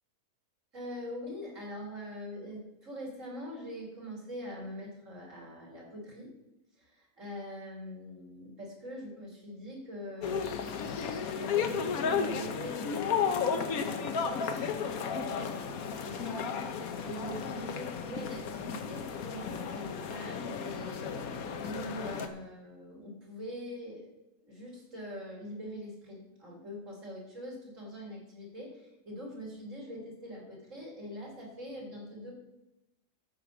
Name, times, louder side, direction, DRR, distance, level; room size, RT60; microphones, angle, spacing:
voice 1, 0.7-6.3 6.8-10.6 11.1-14.7 15.0-16.4 17.0-21.2 21.6-24.1 24.4-32.3, equal, 50° right, -2 dB, 4.0 m, -43 dB
sound 1, 10.2-22.3, left 6 dB, 65° left, 1.3 m, -33 dB
12.5 x 5.6 x 7.1 m, 0.94 s
omnidirectional pair, 1.7 m